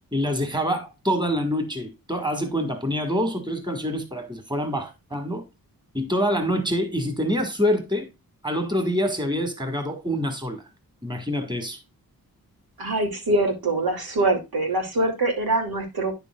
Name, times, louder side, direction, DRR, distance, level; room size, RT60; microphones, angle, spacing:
voice 1, 0.1-5.4 5.9-8.1 8.4-10.6 11.0-11.8, equal, 10° right, 1.8 m, -26 dB
voice 2, 12.8-16.1, right 2 dB, 80° right, 2.6 m, -24 dB
10.0 x 6.9 x 2.4 m
wide cardioid pair, 105°, 36 cm